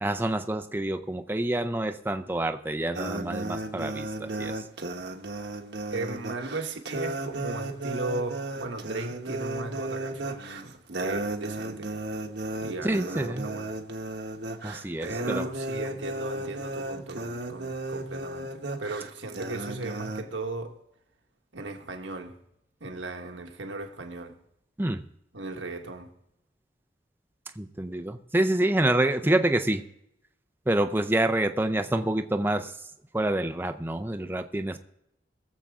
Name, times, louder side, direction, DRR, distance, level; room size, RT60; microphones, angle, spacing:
voice 1, 0.0-4.5 12.8-13.5 14.6-15.5 24.8-25.0 27.6-29.8 30.7-32.7 33.1-34.8, right 1 dB, 10° right, 0.5 m, -27 dB
sound 1, 2.9-20.2, right 2 dB, 65° right, 1.1 m, -34 dB
voice 2, 5.9-11.9 12.6-13.8 15.0-20.8 21.5-22.4 22.8-24.4 25.3-26.1, right 2 dB, 80° right, 1.4 m, -37 dB
20.5 x 7.4 x 3.6 m
head